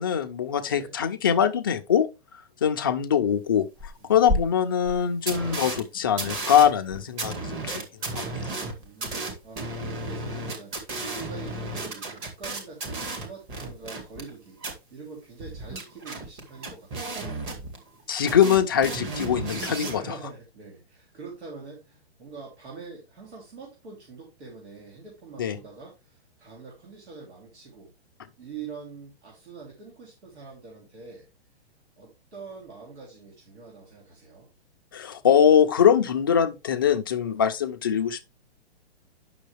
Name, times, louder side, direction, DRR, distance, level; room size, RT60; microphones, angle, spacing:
voice 1, 0.0-2.1 2.6-3.7 4.1-7.8 8.1-8.3 18.1-20.0 25.4-25.6 34.9-38.2, left 8 dB, 20° left, 0.4 m, -22 dB
voice 2, 0.6-1.0 4.0-4.5 5.4-5.8 8.8-17.5 19.8-27.9 28.4-31.3 32.0-34.5, right 4 dB, 90° right, 3.5 m, -44 dB
sound 1, 3.8-3.9 4.3-4.4 4.9-5.0 5.3-5.8 6.2-14.3 14.6-14.7 15.4-18.0 18.3-20.0, right 2 dB, 25° right, 1.9 m, -33 dB
9.2 x 6.3 x 3.3 m
hypercardioid pair, 160°, 33 cm